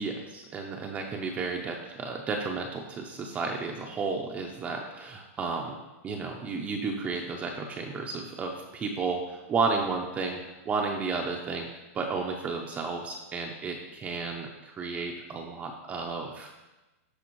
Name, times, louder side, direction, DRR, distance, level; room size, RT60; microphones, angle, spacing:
voice 1, 0.0-5.8 6.0-16.5, right 4 dB, 15° right, 1 dB, 0.5 m, -32 dB
13.0 x 4.7 x 3.0 m, 1.1 s
supercardioid pair, 155°, 8 cm